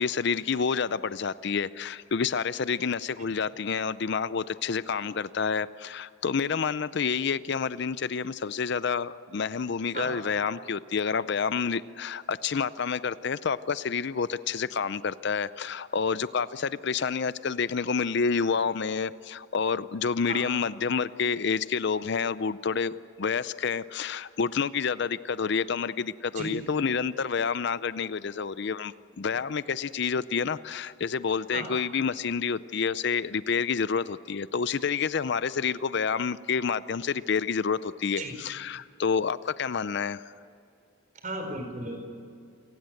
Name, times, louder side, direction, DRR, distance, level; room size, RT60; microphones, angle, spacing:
voice 1, 0.0-40.3, left 5 dB, 55° left, 16 dB, 0.5 m, -29 dB
voice 2, 41.2-42.0, right 1 dB, 35° right, 4 dB, 4.8 m, -35 dB
28.0 x 18.5 x 7.8 m, 2.5 s
head